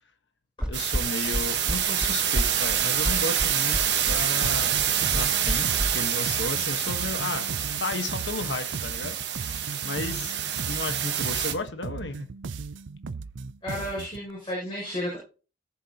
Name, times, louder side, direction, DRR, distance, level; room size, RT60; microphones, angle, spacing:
sound 1, 0.6-5.9, equal, 5° right, 0.7 m, -29 dB
voice 1, 0.7-4.8 5.1-5.7 5.9-7.5 7.8-9.2 9.8-10.4 10.7-12.3, left 3 dB, 70° left, 1.4 m, -33 dB
sound 2, 0.7-11.5, right 9 dB, 65° right, 1.4 m, -27 dB
sound 3, 4.4-14.3, right 4 dB, 85° right, 0.5 m, -38 dB
voice 2, 13.6-15.2, equal, 25° left, 6.6 m, -32 dB
18.0 x 7.1 x 2.9 m
head